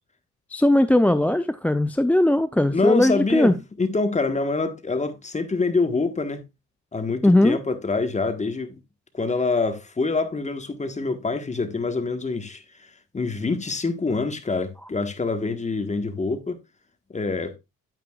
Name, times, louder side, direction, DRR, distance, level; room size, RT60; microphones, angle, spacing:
voice 1, 0.5-3.6 7.2-7.6, left 1 dB, 5° left, 0.4 m, -19 dB
voice 2, 2.7-6.4 6.9-8.8 9.1-16.6 17.1-17.6, left 3 dB, 25° left, 1.4 m, -26 dB
9.2 x 8.6 x 2.4 m
cardioid pair, 90°, 30 cm